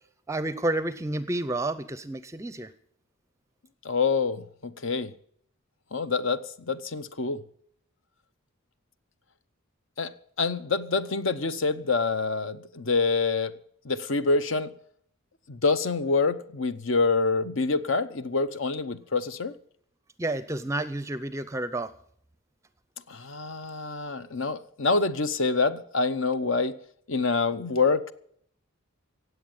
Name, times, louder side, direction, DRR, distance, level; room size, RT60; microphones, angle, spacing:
voice 1, 0.3-2.7 20.2-21.9, right 2 dB, 15° right, 14 dB, 0.5 m, -30 dB
voice 2, 3.8-5.1 5.9-7.4 10.0-10.1 10.4-13.5 13.8-14.7 15.5-19.5 23.1-26.8 27.1-28.0, left 4 dB, 60° left, 13 dB, 0.8 m, -26 dB
17.0 x 8.0 x 8.9 m, 0.65 s
head